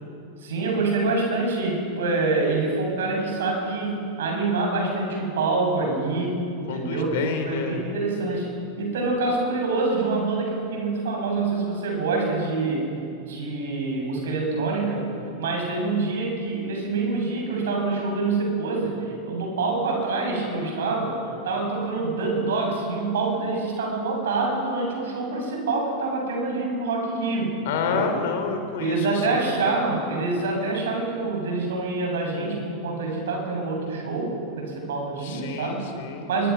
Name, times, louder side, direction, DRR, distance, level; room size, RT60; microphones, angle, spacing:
voice 1, 0.4-7.2 7.4-12.9 13.2-15.1 15.4-28.1 28.8-35.9 36.3-36.5, right 3 dB, 60° right, 1 dB, 7.9 m, -26 dB
voice 2, 6.7-7.8 27.7-29.5 35.2-36.3, left 6 dB, 55° left, 5 dB, 3.8 m, -29 dB
25.0 x 23.5 x 6.0 m, 2.6 s
figure-of-eight pair, 90°, 0 cm